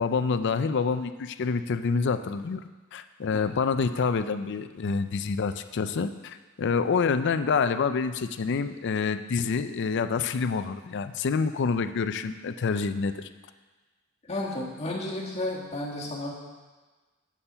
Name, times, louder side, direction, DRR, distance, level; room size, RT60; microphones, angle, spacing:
voice 1, 0.0-2.6 2.9-13.3, left 5 dB, 55° left, 11 dB, 0.4 m, -27 dB
voice 2, 14.3-16.3, left 1 dB, 30° left, -3 dB, 1.5 m, -32 dB
7.2 x 6.8 x 5.6 m, 1.3 s
head